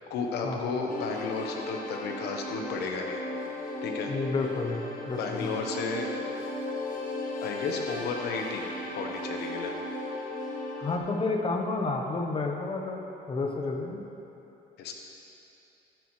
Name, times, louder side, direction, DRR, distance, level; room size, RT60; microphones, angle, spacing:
voice 1, 0.1-3.2 3.8-4.1 5.0-6.1 7.4-9.7 14.8-14.9, left 4 dB, 75° left, 2 dB, 1.2 m, -33 dB
sound 1, 0.9-11.0, left 2 dB, 55° left, 1.4 m, -36 dB
voice 2, 4.1-5.5 10.8-14.0, left 3 dB, 30° left, 2 dB, 1.1 m, -30 dB
12.0 x 9.4 x 3.3 m, 3.0 s
cardioid pair, 110°, 17 cm